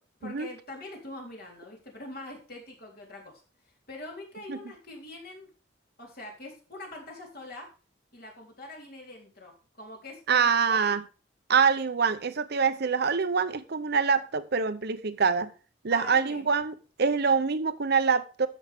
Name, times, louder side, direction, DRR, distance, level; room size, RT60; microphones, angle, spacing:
voice 1, 0.2-3.4 3.9-5.5 6.0-7.7 8.1-11.0 15.9-16.5, left 2 dB, 55° left, 3.8 m, -43 dB
voice 2, 10.3-11.0 11.5-15.5 15.8-18.5, right 5 dB, 60° right, 0.7 m, -25 dB
13.5 x 6.3 x 3.6 m
head